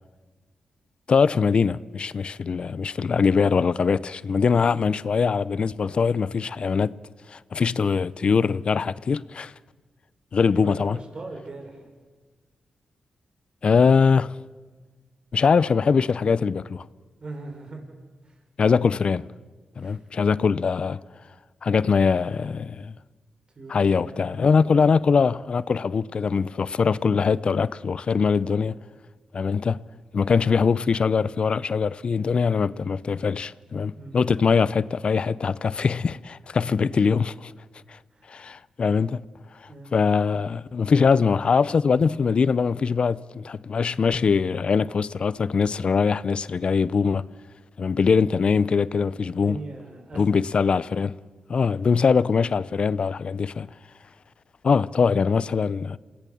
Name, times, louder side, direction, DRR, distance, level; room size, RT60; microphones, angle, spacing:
voice 1, 1.1-6.9 7.3-9.5 10.3-11.0 13.6-14.4 15.3-16.9 18.6-19.3 19.8-21.0 21.6-22.9 23.7-28.7 29.3-29.8 30.1-37.5 37.9-38.0 38.3-39.2 39.9-47.3 47.8-49.6 50.2-51.1 51.5-53.7 54.6-56.0, left 5 dB, 55° left, 0.6 m, -22 dB
voice 2, 10.5-11.8 17.2-17.8 18.2-18.3 19.8-20.0 23.6-24.9 33.9-34.2 38.1-38.3 39.7-39.9 49.2-50.2, right 2 dB, 50° right, 5.7 m, -40 dB
27.5 x 18.5 x 7.1 m
cardioid pair, 55°, 2 cm